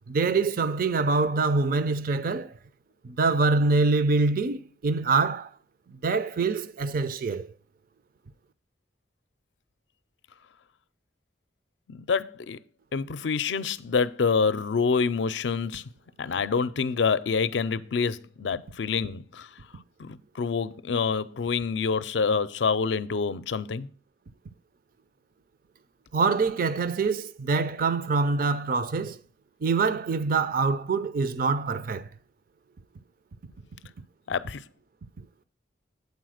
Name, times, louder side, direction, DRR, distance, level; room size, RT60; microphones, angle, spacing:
voice 1, 0.1-2.5 3.0-5.5 6.0-7.5 26.1-29.2 29.6-32.1, right 4 dB, 50° right, 0.5 m, -25 dB
voice 2, 11.9-12.6 12.9-15.8 16.2-19.5 20.0-23.9 34.3-34.6, left 5 dB, 75° left, 0.5 m, -27 dB
8.3 x 4.2 x 6.3 m
head